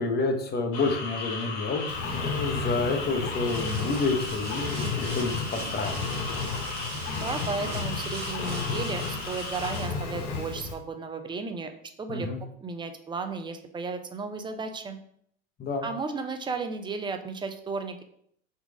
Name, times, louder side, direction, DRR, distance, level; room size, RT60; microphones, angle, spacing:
voice 1, 0.0-6.0 12.1-12.4 15.6-15.9, left 3 dB, 25° left, 4 dB, 0.8 m, -29 dB
sound 1, 0.7-9.8, left 3 dB, 55° left, 1.0 m, -37 dB
Engine, 1.9-10.7, left 5 dB, 85° left, 0.9 m, -33 dB
sound 2, 3.3-10.0, right 5 dB, 70° right, 1.1 m, -42 dB
voice 2, 7.1-11.7 12.0-12.3 12.6-15.0 15.8-18.0, right 4 dB, 15° right, 7 dB, 0.4 m, -34 dB
4.0 x 2.3 x 4.5 m, 0.67 s
hypercardioid pair, 90°, 36 cm